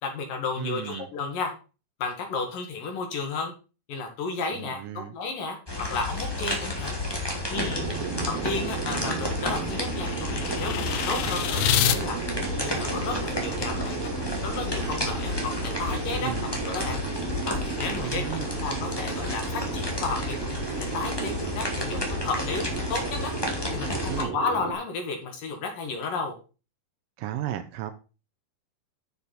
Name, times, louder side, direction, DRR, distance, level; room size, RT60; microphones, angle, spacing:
voice 1, 0.0-1.5 2.0-3.5 3.9-4.8 5.1-5.6 5.9-7.0 7.5-7.9 8.2-12.2 12.6-14.0 14.4-15.3 15.6-17.0 17.4-20.5 20.8-23.3 23.7-26.3, left 4 dB, 65° left, 4 dB, 3.2 m, -32 dB
voice 2, 0.6-1.1 4.5-5.1 8.0-8.3 16.2-16.5 18.0-18.5 24.1-24.3 27.2-27.9, right 12 dB, 75° right, 8 dB, 2.2 m, -34 dB
sound 1, 5.7-24.2, left 2 dB, 40° left, 0.3 m, -32 dB
sound 2, 7.5-24.7, right 6 dB, 60° right, 2.8 m, -34 dB
sound 3, 8.4-12.0, left 10 dB, 80° left, 1.6 m, -29 dB
10.5 x 6.8 x 4.2 m, 0.33 s
omnidirectional pair, 4.4 m